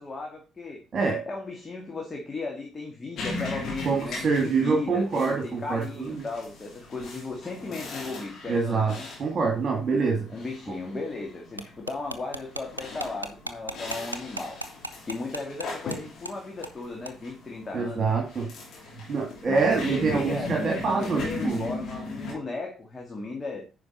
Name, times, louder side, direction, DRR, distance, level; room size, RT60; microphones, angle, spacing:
voice 1, 0.0-0.8 1.3-9.1 10.3-14.6 15.0-18.1 19.5-23.6, left 3 dB, 25° left, 0 dB, 2.0 m, -36 dB
voice 2, 0.9-1.2 3.9-6.2 8.5-8.9 9.2-10.3 17.7-18.5 19.1-21.6, right 4 dB, 40° right, 0 dB, 2.1 m, -25 dB
sound 1, 3.2-22.3, left 2 dB, 50° left, 3.0 m, -38 dB
sound 2, 11.6-16.0 16.2-16.3 16.6-16.8 17.0-17.1, right 2 dB, 90° right, 0.4 m, -36 dB
9.5 x 5.1 x 4.2 m, 0.32 s
figure-of-eight pair, 45°, 0 cm